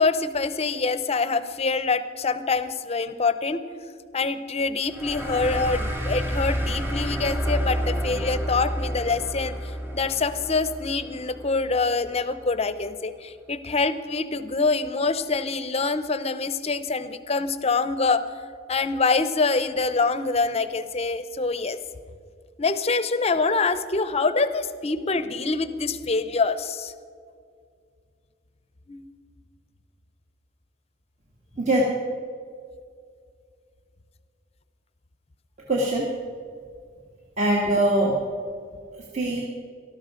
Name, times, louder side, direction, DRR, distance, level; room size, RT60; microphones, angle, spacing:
voice 1, 0.0-3.6 4.1-18.3 18.7-21.8 22.6-26.9 28.9-29.0, left 4 dB, 30° left, 12 dB, 0.7 m, -25 dB
sound 1, 4.9-12.0, equal, 10° right, 1.7 m, -29 dB
voice 2, 35.7-36.1 37.4-38.1 39.1-39.4, right 1 dB, 35° right, -4 dB, 2.0 m, -22 dB
18.5 x 13.0 x 5.1 m, 2.2 s
head